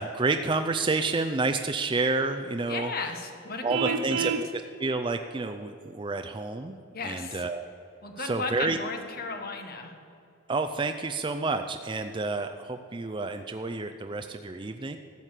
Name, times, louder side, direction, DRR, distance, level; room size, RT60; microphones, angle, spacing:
voice 1, 0.0-2.9 3.6-6.8 7.0-7.6 8.2-8.8 10.5-15.0, right 3 dB, 25° right, 6 dB, 0.4 m, -29 dB
voice 2, 2.7-4.3 6.9-7.5 8.0-9.9, left 3 dB, 45° left, 4 dB, 1.4 m, -35 dB
Vehicle horn car horn honking, 3.7-4.5, right 6 dB, 80° right, 0.5 m, -28 dB
13.5 x 8.2 x 7.5 m, 2.7 s
head